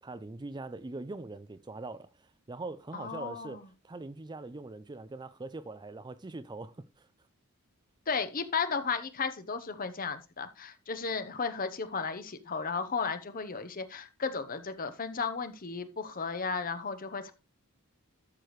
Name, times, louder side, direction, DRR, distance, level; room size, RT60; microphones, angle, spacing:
voice 1, 0.0-7.1, right 2 dB, 20° right, 0.4 m, -42 dB
voice 2, 2.9-3.6 8.1-17.3, left 5 dB, 40° left, 0.9 m, -34 dB
12.0 x 6.8 x 3.1 m
head